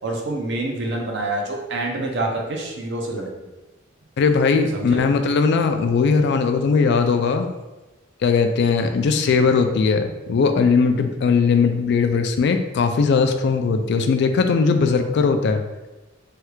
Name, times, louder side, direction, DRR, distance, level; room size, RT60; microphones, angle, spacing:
voice 1, 0.0-3.4 4.7-5.0, right 2 dB, 60° right, 0 dB, 0.6 m, -27 dB
voice 2, 4.2-7.5 8.2-15.6, left 5 dB, 60° left, 7 dB, 0.3 m, -19 dB
3.3 x 2.3 x 3.0 m, 1.1 s
head